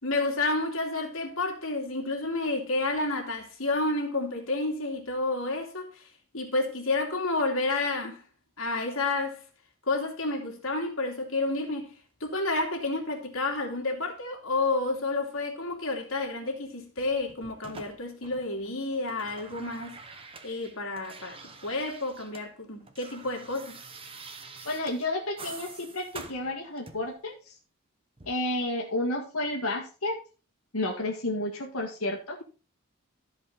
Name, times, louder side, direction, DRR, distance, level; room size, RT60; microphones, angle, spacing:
voice 1, 0.0-6.1 6.3-8.2 8.6-9.4 9.9-11.9 12.2-20.0 20.4-23.8, left 2 dB, 70° left, 2.8 m, -30 dB
sound 1, 17.0-18.7 18.9-22.5 22.7-27.2 28.2-28.3, right 4 dB, 25° right, 1.0 m, -47 dB
voice 2, 24.6-27.6 28.3-30.2 30.7-32.4, left 1 dB, 85° left, 1.8 m, -31 dB
14.0 x 5.1 x 4.0 m
head